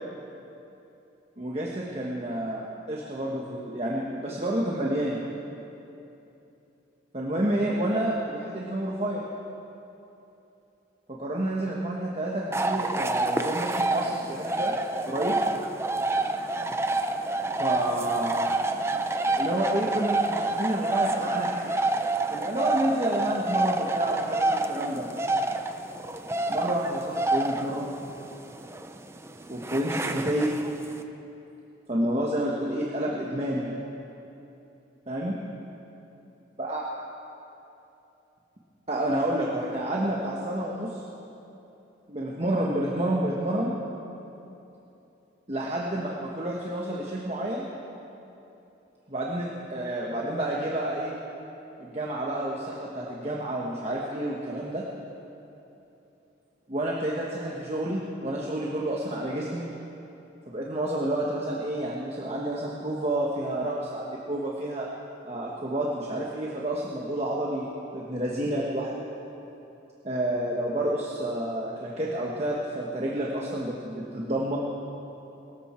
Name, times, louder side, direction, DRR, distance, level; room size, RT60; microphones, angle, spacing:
voice 1, 1.4-5.3 7.1-9.3 11.1-14.8 15.1-15.4 17.6-18.5 19.4-22.0 22.3-25.1 26.5-27.9 29.5-30.6 31.9-33.8 35.1-35.3 36.6-36.8 38.9-41.0 42.1-43.8 45.5-47.7 49.1-51.1 51.8-54.8 56.7-59.7 60.5-64.9 65.2-67.7 67.9-69.0 70.0-74.6, right 1 dB, 30° right, -3 dB, 1.3 m, -29 dB
sound 1, 12.5-31.0, right 2 dB, 15° right, 0.5 m, -28 dB
23.5 x 13.5 x 4.4 m, 2.9 s
head